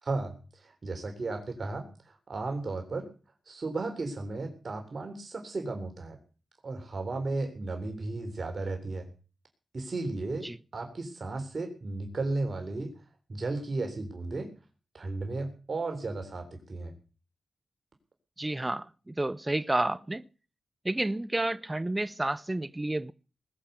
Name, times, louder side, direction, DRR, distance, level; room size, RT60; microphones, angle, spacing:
voice 1, 0.0-3.1 3.5-6.2 6.6-9.1 9.7-12.9 13.3-14.5 14.9-16.9, right 3 dB, 60° right, 3.6 m, -34 dB
voice 2, 18.4-20.2 20.8-23.1, right 1 dB, 20° right, 0.7 m, -30 dB
20.0 x 7.4 x 8.2 m
cardioid pair, 50°, 0 cm